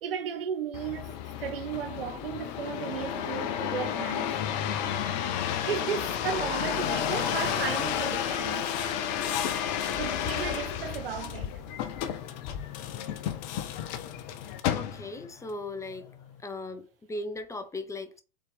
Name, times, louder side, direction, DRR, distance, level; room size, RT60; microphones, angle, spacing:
voice 1, 0.0-4.4 5.6-8.7 9.4-9.6 10.0-11.9, right 8 dB, 75° right, 0.7 m, -35 dB
sound 1, 0.7-15.3 15.9-16.4, left 9 dB, 50° left, 0.7 m, -31 dB
voice 2, 14.7-16.1 16.4-18.2, left 2 dB, 10° left, 0.5 m, -38 dB
4.0 x 3.8 x 3.4 m
figure-of-eight pair, 95°, 29 cm